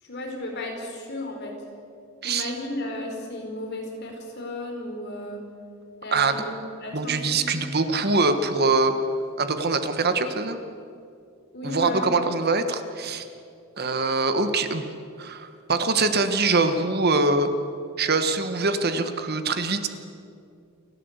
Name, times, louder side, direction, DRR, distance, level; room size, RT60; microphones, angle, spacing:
voice 1, 0.0-1.6 2.2-5.4 6.0-7.6 11.5-12.1, left 1 dB, 55° left, 1 dB, 4.7 m, -34 dB
voice 2, 6.1-6.4 6.9-8.9 9.4-10.6 11.6-13.2 13.8-14.8 15.2-17.5 18.0-19.9, right 3 dB, 50° right, 9 dB, 1.3 m, -23 dB
29.0 x 12.5 x 8.2 m, 2.4 s
head